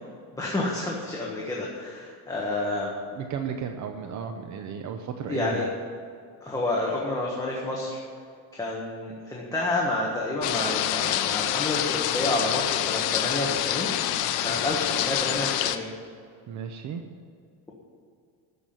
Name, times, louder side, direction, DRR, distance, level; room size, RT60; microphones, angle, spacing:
voice 1, 0.3-2.9 5.3-5.7 6.4-8.0 8.5-13.9 14.3-15.9, left 2 dB, 10° left, -4 dB, 1.5 m, -29 dB
voice 2, 3.1-5.6 14.5-14.6 16.5-17.0, right 7 dB, 45° right, 5 dB, 0.8 m, -34 dB
sound 1, 10.4-15.8, left 12 dB, 65° left, 0.8 m, -27 dB
13.5 x 6.1 x 8.8 m, 2.3 s
cardioid pair, 165°, 40 cm